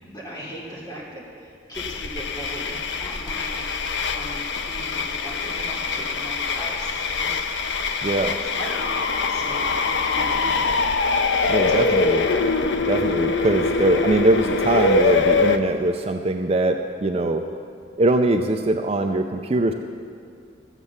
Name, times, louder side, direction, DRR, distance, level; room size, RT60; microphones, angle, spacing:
voice 1, 0.0-3.7 4.1-10.7 11.9-12.2, right 1 dB, 25° left, -5 dB, 3.2 m, -38 dB
sound 1, 1.7-15.6, left 4 dB, 75° left, 0.6 m, -23 dB
voice 2, 8.0-8.3 11.5-12.3 12.9-17.5 18.0-19.7, right 2 dB, 35° right, 5 dB, 0.5 m, -22 dB
13.5 x 8.2 x 7.2 m, 2.3 s
head